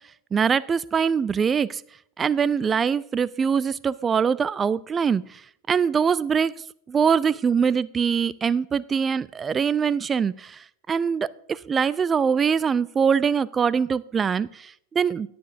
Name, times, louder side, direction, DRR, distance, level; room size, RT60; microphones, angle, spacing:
voice 1, 0.3-1.8 2.2-5.4 5.7-6.5 6.9-10.6 10.9-15.3, right 6 dB, 20° right, 19 dB, 0.3 m, -23 dB
17.5 x 9.3 x 2.6 m, 0.70 s
figure-of-eight pair, 90°, 0 cm